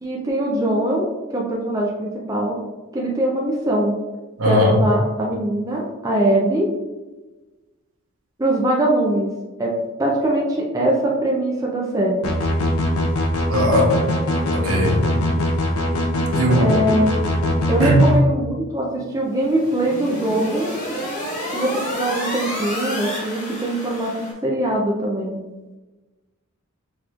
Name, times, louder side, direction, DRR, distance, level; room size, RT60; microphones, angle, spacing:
voice 1, 0.0-2.6 2.9-4.0 4.4-6.7 8.4-9.3 9.6-9.7 10.0-12.3 16.6-17.3 17.7-20.7 21.5-25.4, right 1 dB, 15° right, -3 dB, 0.4 m, -22 dB
voice 2, 4.4-4.7 13.5-13.9 14.5-15.0 16.3-16.7 17.8-18.0, equal, 75° right, -1 dB, 1.0 m, -18 dB
sound 1, 12.2-18.1, left 1 dB, 80° left, 0.7 m, -21 dB
sound 2, 19.3-24.3, equal, 30° left, 1.3 m, -30 dB
6.1 x 3.0 x 2.4 m, 1.2 s
head